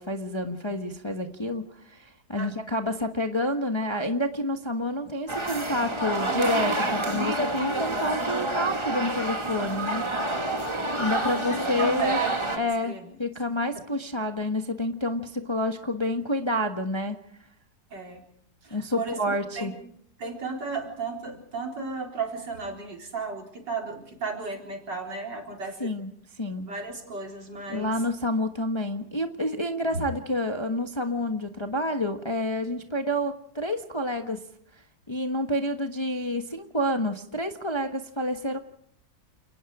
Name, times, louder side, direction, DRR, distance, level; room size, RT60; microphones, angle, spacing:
voice 1, 0.0-10.0 11.0-12.2 12.6-12.9 13.2-17.2 18.7-19.7 25.8-26.1 26.4-26.7 27.7-34.4 35.1-38.6, left 1 dB, 15° left, 6 dB, 1.2 m, -29 dB
sound 1, 5.3-12.6, right 1 dB, 15° right, 1.8 m, -28 dB
voice 2, 11.8-13.1 17.9-18.2 18.6-19.7 20.2-25.9 26.6-27.9 29.9-30.0, right 4 dB, 70° right, 1 dB, 4.8 m, -34 dB
29.0 x 19.5 x 5.0 m, 0.66 s
omnidirectional pair, 2.0 m